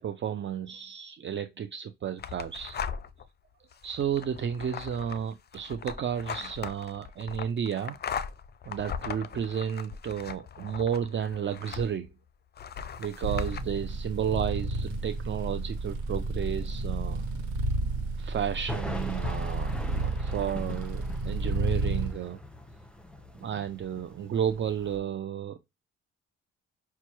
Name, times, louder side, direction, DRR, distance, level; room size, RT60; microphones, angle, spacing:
voice 1, 0.0-2.8 3.8-8.0 8.7-12.1 13.0-17.2 18.2-19.7 20.0-22.4 23.3-25.6, right 8 dB, 40° right, 0.5 m, -32 dB
sound 1, 2.2-3.3 3.7-12.1 12.6-13.6, left 7 dB, 35° left, 0.5 m, -39 dB
sound 2, 13.2-22.1, right 2 dB, 85° right, 1.3 m, -31 dB
sound 3, 13.5-15.2 15.4-15.9 16.1-16.2 16.7-16.8 18.2-25.0, left 1 dB, 5° left, 0.8 m, -41 dB
5.8 x 2.2 x 3.0 m
cardioid pair, 90°, 30 cm